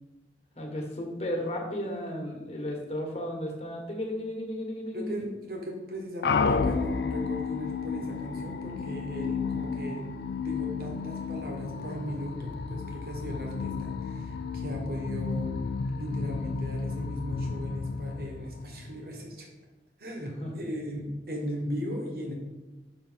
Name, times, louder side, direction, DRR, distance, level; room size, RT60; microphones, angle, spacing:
voice 1, 0.5-5.3 20.4-20.5, left 1 dB, 35° left, 1 dB, 1.4 m, -34 dB
voice 2, 4.9-10.1 10.4-15.5 16.0-19.5 20.0-22.3, equal, 55° right, 1 dB, 1.5 m, -37 dB
sound 1, 6.2-19.1, left 5 dB, 65° left, 0.4 m, -32 dB
6.6 x 5.7 x 4.0 m, 1.1 s
head